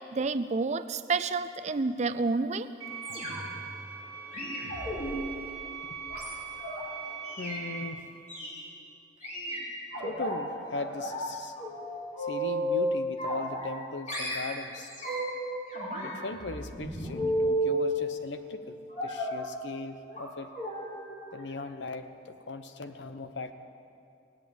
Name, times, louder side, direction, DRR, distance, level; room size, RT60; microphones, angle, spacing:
voice 1, 0.1-2.7, right 3 dB, 35° right, 12 dB, 0.4 m, -29 dB
sound 1, 2.8-7.9, right 7 dB, 15° right, 2.2 m, -41 dB
sound 2, 3.0-3.6 4.3-6.8 7.3-7.6 8.3-8.6 9.2-10.3 10.7-11.3 11.6-12.8 13.2-13.8 14.1-15.4 15.7-17.8 19.0-19.4 20.1-20.3 20.5-20.8 21.1-21.3 21.6-21.7, right 1 dB, 40° left, 3.7 m, -33 dB
voice 2, 7.4-8.0 10.0-11.5 12.3-14.9 16.0-20.5 21.3-23.5, left 3 dB, 65° left, 9 dB, 0.9 m, -39 dB
17.5 x 8.6 x 8.6 m, 2.5 s
head